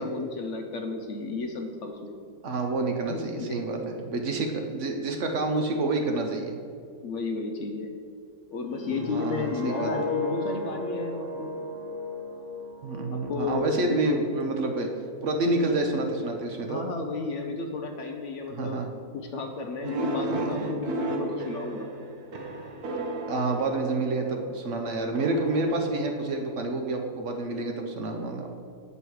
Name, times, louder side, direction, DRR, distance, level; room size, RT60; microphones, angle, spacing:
voice 1, 0.0-2.1 3.1-3.8 7.0-7.9 8.5-11.5 13.1-14.2 16.7-18.8 19.1-21.9, left 3 dB, 65° left, 4 dB, 0.8 m, -33 dB
voice 2, 2.4-6.6 8.8-9.9 12.8-14.9 15.2-16.8 18.5-18.9 20.2-20.6 23.3-28.6, right 2 dB, 60° right, 3 dB, 0.9 m, -28 dB
sound 1, 8.8-13.8 14.2-14.5, left 2 dB, 30° left, 1.3 m, -35 dB
sound 2, 19.8-24.4 25.1-26.7, right 2 dB, 75° right, 1.3 m, -33 dB
8.2 x 5.5 x 4.6 m, 2.4 s
omnidirectional pair, 1.6 m